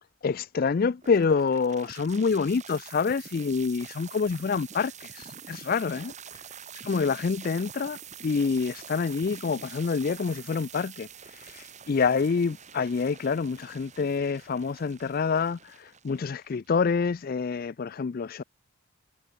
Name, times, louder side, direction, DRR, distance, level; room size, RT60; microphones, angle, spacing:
voice 1, 0.2-6.1 6.8-18.4, left 5 dB, 40° left, 0.4 m, -27 dB
sound 1, 1.0-17.0, right 7 dB, 35° right, 3.4 m, -46 dB
sound 2, 3.8-4.2 6.3-6.8 8.1-8.2 8.8-9.1, left 1 dB, 15° left, 5.3 m, -64 dB
head